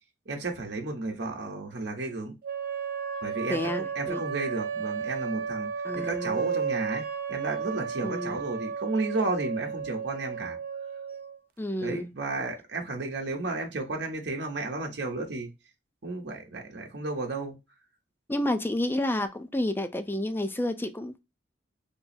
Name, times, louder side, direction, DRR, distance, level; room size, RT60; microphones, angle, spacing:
voice 1, 0.3-2.3 3.2-10.6 11.8-15.5 16.0-17.6, right 2 dB, 70° right, 0.8 m, -33 dB
sound 1, 2.4-11.4, right 6 dB, 55° right, 0.4 m, -33 dB
voice 2, 3.5-4.2 5.8-6.5 8.0-8.4 11.6-12.1 18.3-21.2, left 1 dB, 10° left, 0.4 m, -30 dB
3.5 x 2.0 x 4.0 m
head